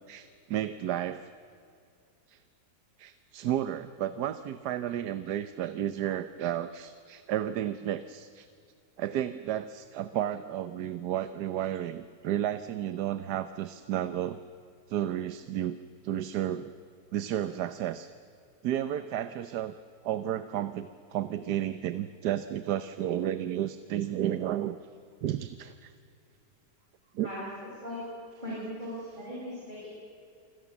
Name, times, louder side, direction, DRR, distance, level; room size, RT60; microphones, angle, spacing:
voice 1, 0.1-1.3 2.3-2.4 3.0-8.5 9.0-14.4 14.9-15.8 16.0-16.7 17.1-18.1 18.6-19.7 20.0-24.8 25.2-25.9 27.1-27.3, right 11 dB, 75° right, 12 dB, 1.3 m, -32 dB
voice 2, 27.2-28.0 28.4-29.9, equal, 25° right, -6 dB, 7.2 m, -39 dB
28.5 x 25.5 x 7.2 m, 2.4 s
omnidirectional pair, 1.8 m